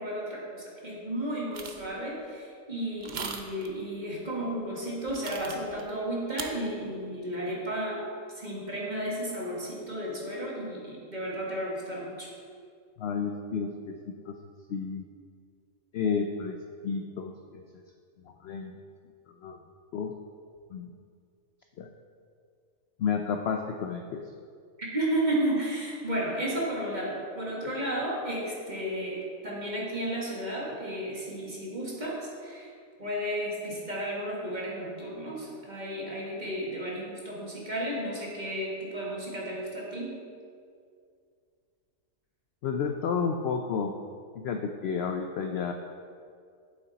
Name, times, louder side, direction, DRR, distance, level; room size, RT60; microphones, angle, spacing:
voice 1, 0.0-8.1 8.3-12.3 24.8-32.7 33.0-40.2, right 1 dB, 30° right, -4 dB, 1.8 m, -33 dB
sound 1, 1.5-1.9 3.0-3.7 5.1-5.8 6.4-6.5, right 5 dB, 50° right, 0.6 m, -38 dB
voice 2, 13.0-14.4 14.7-15.0 15.9-17.6 18.4-18.7 19.4-19.6 19.9-20.1 20.7-20.9 21.8-21.9 23.0-24.2 42.6-44.0 44.4-45.7, left 6 dB, 65° left, 4 dB, 0.6 m, -31 dB
8.5 x 7.7 x 4.1 m, 2.2 s
omnidirectional pair, 1.5 m